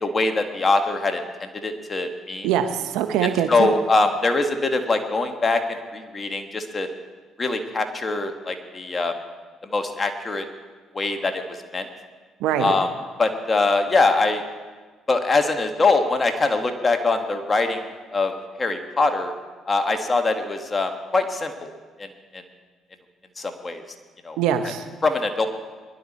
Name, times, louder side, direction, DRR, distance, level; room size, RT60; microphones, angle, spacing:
voice 1, 0.0-2.5 3.2-5.6 5.9-6.9 7.4-9.1 9.7-10.4 10.9-11.9 12.6-12.9 13.2-14.4 15.1-17.8 18.1-19.3 19.7-21.7 22.0-22.1 22.3-22.4 23.4-23.8 24.2-24.4 25.0-25.5, left 3 dB, 30° left, 6 dB, 1.8 m, -23 dB
voice 2, 2.4-3.7 12.4-12.7 24.4-24.8, right 9 dB, 80° right, 7 dB, 1.1 m, -23 dB
20.5 x 11.5 x 4.4 m, 1.4 s
supercardioid pair, 60°, 0 cm